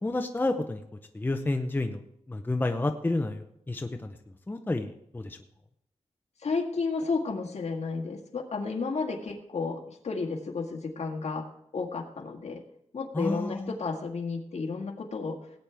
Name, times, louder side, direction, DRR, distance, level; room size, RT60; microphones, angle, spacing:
voice 1, 0.0-0.8 1.1-2.0 2.3-4.2 4.5-5.4 13.1-13.8, left 2 dB, 15° left, 5 dB, 0.7 m, -30 dB
voice 2, 6.4-11.4 11.7-12.6 12.9-15.4, left 4 dB, 65° left, 2 dB, 1.8 m, -32 dB
18.0 x 9.0 x 3.5 m, 0.76 s
wide cardioid pair, 145°, 12 cm